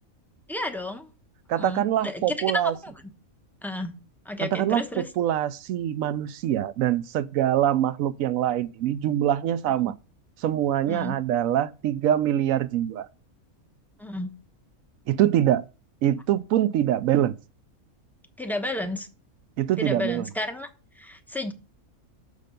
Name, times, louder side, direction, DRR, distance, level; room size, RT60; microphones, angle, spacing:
voice 1, 0.5-1.1 1.6-2.9 3.6-4.0 4.2-5.1 9.9-10.0 10.9-11.1 14.0-14.3 18.4-19.1 19.8-20.7 20.9-21.5, left 1 dB, ahead, 0.6 m, -32 dB
voice 2, 1.5-2.7 4.4-4.8 5.2-9.9 10.4-13.1 15.1-15.6 16.0-17.3 19.6-20.3, right 11 dB, 70° right, 0.9 m, -24 dB
6.7 x 6.6 x 5.1 m
omnidirectional pair, 1.5 m